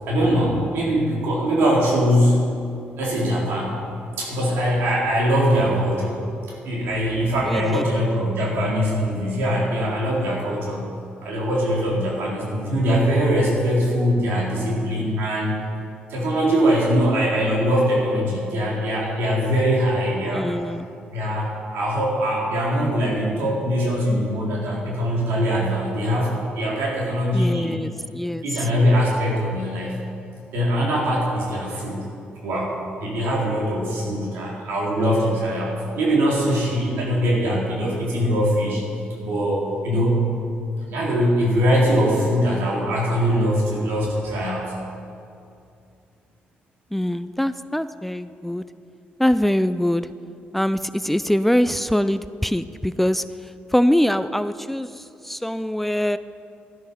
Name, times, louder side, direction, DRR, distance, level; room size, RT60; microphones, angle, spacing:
voice 1, 0.0-2.4 3.0-3.8 4.2-6.2 6.5-10.9 11.2-15.6 16.1-20.5 21.1-27.8 28.4-29.9 30.5-32.0 32.4-38.8 39.2-40.3 40.9-44.7, equal, 85° right, -4 dB, 4.0 m, -22 dB
voice 2, 7.4-7.9 20.3-20.9 27.3-28.7 46.9-48.6 49.2-50.1 50.5-53.2 53.7-56.2, equal, 5° left, 13 dB, 0.3 m, -23 dB
13.0 x 12.0 x 5.6 m, 2.5 s
cardioid pair, 115°, 4 cm